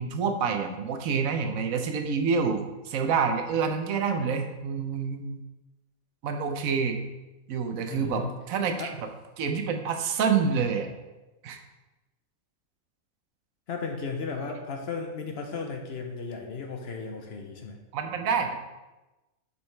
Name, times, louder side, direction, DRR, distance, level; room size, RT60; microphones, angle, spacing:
voice 1, 0.0-5.4 6.2-7.0 7.5-9.1 9.4-10.9 11.4-11.6 17.9-18.6, right 5 dB, 80° right, 6 dB, 1.1 m, -27 dB
voice 2, 7.9-8.3 8.8-8.9 13.7-17.8, left 4 dB, 55° left, 3 dB, 0.8 m, -35 dB
6.9 x 5.2 x 3.2 m, 1.1 s
omnidirectional pair, 1.4 m